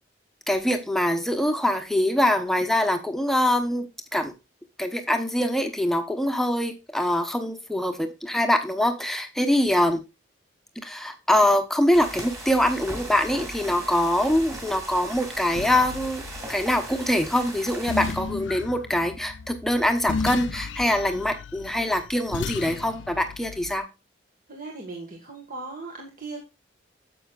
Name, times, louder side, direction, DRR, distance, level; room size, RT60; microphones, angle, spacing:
voice 1, 0.5-3.9 4.1-4.3 4.8-10.0 10.8-23.9, left 1 dB, ahead, 6 dB, 1.0 m, -24 dB
sound 1, 11.9-18.1, right 1 dB, 15° right, 2.7 m, -38 dB
sound 2, 14.3-23.8, left 4 dB, 75° left, 0.5 m, -36 dB
voice 2, 24.5-26.4, right 3 dB, 45° right, 1 dB, 1.7 m, -38 dB
9.9 x 7.8 x 2.4 m, 0.26 s
head